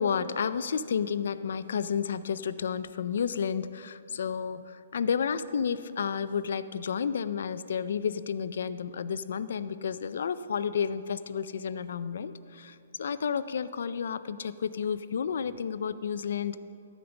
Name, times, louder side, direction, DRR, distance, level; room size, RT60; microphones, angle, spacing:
voice 1, 0.0-16.6, left 7 dB, 60° left, 14 dB, 0.4 m, -31 dB
13.0 x 5.2 x 7.0 m, 2.6 s
hypercardioid pair, 175°, 0 cm